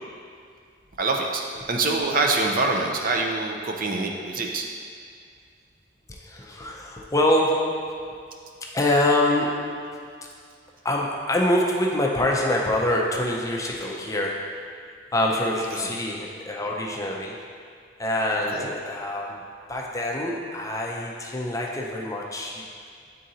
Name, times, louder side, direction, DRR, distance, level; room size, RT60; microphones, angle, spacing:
voice 1, 1.0-4.6 15.7-15.9 18.5-18.7, right 3 dB, 50° right, 1 dB, 0.5 m, -25 dB
voice 2, 6.1-8.3 8.6-10.1 10.8-14.8 15.1-17.4 18.0-22.9, left 1 dB, 15° left, -1 dB, 0.5 m, -25 dB
9.0 x 3.8 x 2.8 m, 2.2 s
head